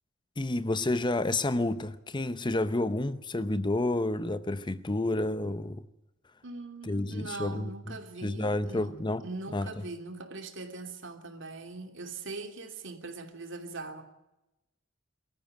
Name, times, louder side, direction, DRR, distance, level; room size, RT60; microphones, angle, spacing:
voice 1, 0.4-5.8 6.8-9.2 9.5-9.7, left 2 dB, 25° left, 0.7 m, -30 dB
voice 2, 6.4-14.0, right 3 dB, 65° right, 3.0 m, -41 dB
23.0 x 14.5 x 9.1 m
head